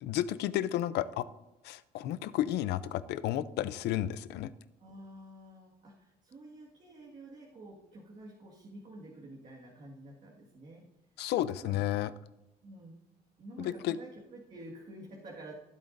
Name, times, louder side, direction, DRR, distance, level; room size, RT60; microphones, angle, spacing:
voice 1, 0.0-1.3 1.6-4.5 11.2-12.1 13.6-14.0, left 12 dB, 75° left, 15 dB, 0.5 m, -32 dB
voice 2, 4.8-10.9 11.4-11.8 12.6-12.9 13.4-15.5, right 1 dB, 45° right, -3 dB, 1.9 m, -49 dB
15.0 x 8.3 x 2.6 m, 0.99 s
cardioid pair, 110°, 17 cm